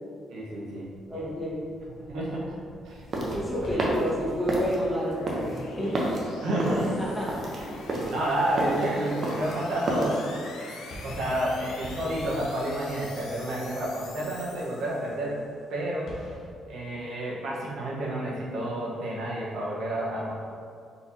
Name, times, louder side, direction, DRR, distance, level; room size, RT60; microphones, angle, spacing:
voice 1, 0.3-1.2 2.1-2.5 2.8-3.0 3.6-3.8 6.4-7.0 7.5-7.7 8.1-10.2 10.6-10.7 11.0-15.4 15.7-16.3 16.7-20.3, right 1 dB, 75° right, -5 dB, 1.0 m, -30 dB
voice 2, 1.1-1.6 3.3-6.2 7.0-7.3, equal, 10° left, -7 dB, 1.3 m, -30 dB
sound 1, 1.7-15.4, left 3 dB, 90° left, 0.5 m, -45 dB
sound 2, 1.8-10.0 10.5-16.5, left 1 dB, 70° left, 0.9 m, -47 dB
sound 3, 2.9-10.2, right 1 dB, 45° right, 0.8 m, -31 dB
4.2 x 4.1 x 2.8 m, 2.4 s
cardioid pair, 90°, 0 cm